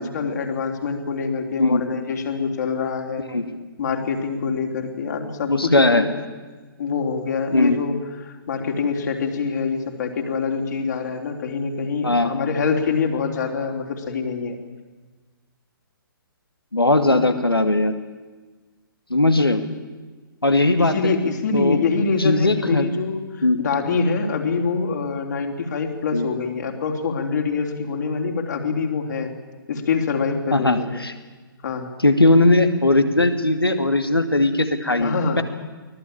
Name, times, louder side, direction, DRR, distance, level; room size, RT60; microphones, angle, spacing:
voice 1, 0.0-3.3 3.8-6.1 6.8-14.6 20.8-29.3 29.7-31.0 31.6-31.9 35.0-35.4, left 5 dB, 50° left, 3 dB, 3.5 m, -25 dB
voice 2, 5.5-6.0 7.5-7.8 12.0-12.3 16.7-17.9 19.1-19.6 20.4-21.1 21.5-21.8 22.2-22.9 23.4-23.6 26.1-26.3 30.5-31.1 32.0-35.4, left 2 dB, 85° left, 8 dB, 2.5 m, -18 dB
24.0 x 17.5 x 8.8 m, 1.3 s
figure-of-eight pair, 130°, 12 cm